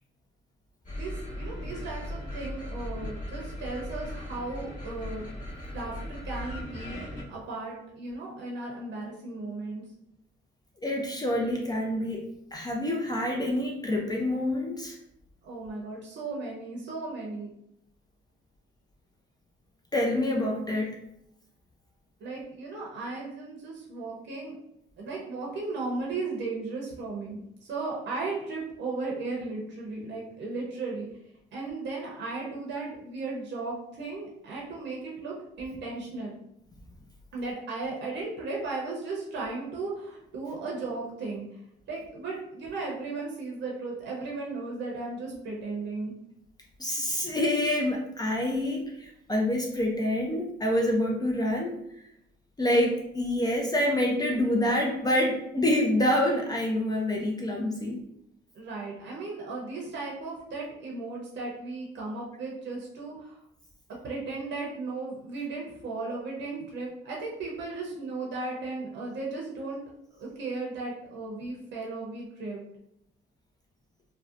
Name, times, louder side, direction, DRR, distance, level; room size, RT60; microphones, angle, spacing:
sound 1, 0.8-7.2, left 1 dB, 40° left, 1.1 m, -38 dB
voice 1, 1.0-5.2 5.7-9.8 15.4-17.5 22.2-24.6 25.0-31.1 31.5-36.3 37.3-41.4 41.9-46.1 58.5-63.4 64.0-69.8 70.2-72.6, right 3 dB, 65° right, -3 dB, 0.7 m, -36 dB
voice 2, 10.8-15.0 19.9-21.0 46.8-51.7 52.6-58.0, left 1 dB, 20° left, 0 dB, 0.4 m, -27 dB
2.6 x 2.0 x 2.4 m, 0.78 s
cardioid pair, 90°, 20 cm